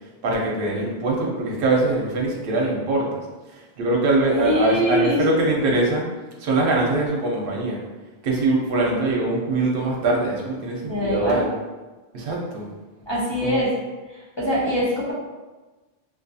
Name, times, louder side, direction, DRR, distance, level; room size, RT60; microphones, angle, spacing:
voice 1, 0.2-3.2 3.5-6.0 6.4-7.8 8.2-11.5 12.1-12.7 13.4-13.6, right 2 dB, 65° right, -2 dB, 0.8 m, -22 dB
voice 2, 4.3-5.2 10.9-11.4 13.1-13.7 14.1-15.1, equal, 35° left, -7 dB, 0.5 m, -23 dB
2.5 x 2.3 x 2.6 m, 1.2 s
omnidirectional pair, 1.1 m